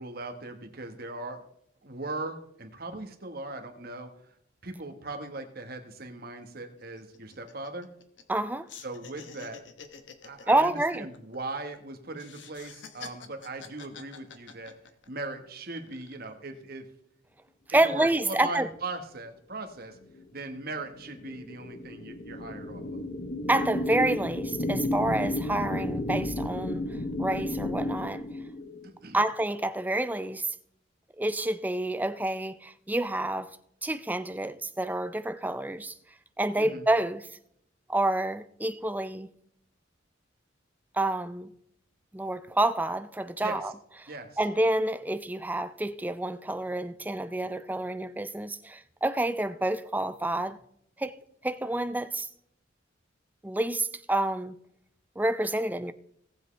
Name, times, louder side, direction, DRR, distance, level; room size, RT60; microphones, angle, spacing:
voice 1, 0.0-1.5 1.8-4.1 4.6-7.9 8.8-9.6 10.2-14.7 15.1-16.9 17.8-20.0 20.3-23.0 28.8-29.2 36.6-36.8 43.4-43.6 44.1-44.4, right 2 dB, 55° right, 1.5 m, -39 dB
sound 1, 5.9-6.0 6.3-6.5 6.8-8.4 8.7-11.8 12.1-15.3 15.7-16.3, left 5 dB, 75° left, 1.1 m, -48 dB
voice 2, 8.3-8.7 10.5-11.1 17.7-18.7 23.5-26.8 27.2-28.2 29.1-30.5 31.2-33.6 33.8-35.9 36.4-37.3 37.9-39.3 40.9-41.5 42.1-43.7 44.4-50.6 51.0-51.2 51.4-52.3 53.4-54.5 55.2-55.9, right 1 dB, 10° right, 0.4 m, -28 dB
sound 2, 20.1-28.9, left 1 dB, 45° left, 0.8 m, -33 dB
18.0 x 7.7 x 3.4 m
head